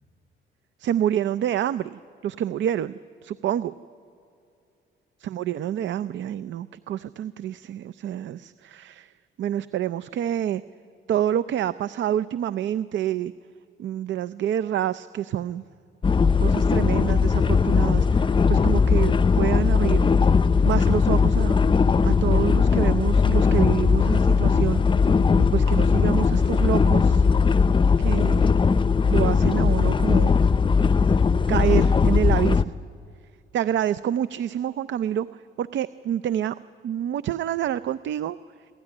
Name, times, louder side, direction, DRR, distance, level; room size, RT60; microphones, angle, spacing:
voice 1, 0.8-2.9 3.2-3.7 5.2-9.1 9.4-10.6 11.1-13.3 13.8-15.6 16.4-20.1 20.6-21.6 22.0-24.8 25.5-27.3 28.0-28.5 29.0-30.4 31.5-32.7 33.5-36.5 36.8-38.4, right 10 dB, 70° right, 15 dB, 0.6 m, -27 dB
sound 1, 16.0-32.6, left 5 dB, 25° left, 0.6 m, -19 dB
27.0 x 13.5 x 9.9 m, 2.5 s
cardioid pair, 90°, 20 cm